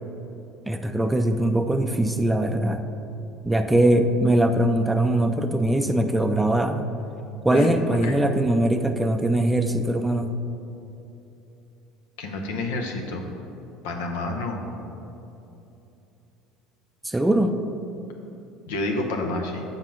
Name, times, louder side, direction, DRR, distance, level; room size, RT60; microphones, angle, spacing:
voice 1, 0.7-2.8 3.4-6.9 7.4-10.4 17.0-17.5, right 1 dB, 10° right, 7 dB, 0.4 m, -21 dB
voice 2, 12.2-13.2 13.8-14.6 18.7-19.6, left 2 dB, 75° left, 2 dB, 0.8 m, -29 dB
7.2 x 4.0 x 5.5 m, 2.8 s
hypercardioid pair, 70°, 0 cm